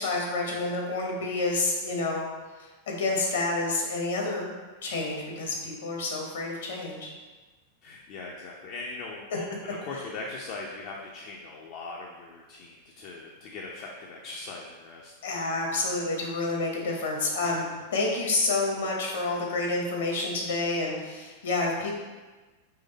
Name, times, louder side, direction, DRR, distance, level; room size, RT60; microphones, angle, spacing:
voice 1, 0.0-2.2 2.6-4.5 4.8-7.1 15.2-17.6 17.9-21.9, left 3 dB, 60° left, -1 dB, 1.1 m, -29 dB
voice 2, 7.8-15.1 17.4-17.6, left 3 dB, 45° left, -2 dB, 0.5 m, -40 dB
3.9 x 3.2 x 4.0 m, 1.3 s
figure-of-eight pair, 90°, 0 cm